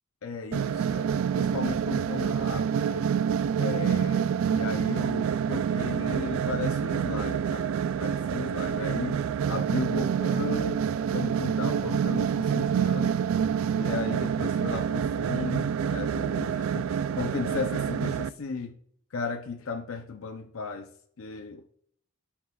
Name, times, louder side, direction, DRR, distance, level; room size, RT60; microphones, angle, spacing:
voice 1, 0.2-3.1 3.5-10.8 11.1-13.2 13.8-18.7 19.1-20.9 21.2-21.7, left 4 dB, 70° left, 0.6 m, -35 dB
sound 1, 0.5-18.3, right 7 dB, 70° right, 0.3 m, -27 dB
16.0 x 5.8 x 2.3 m
head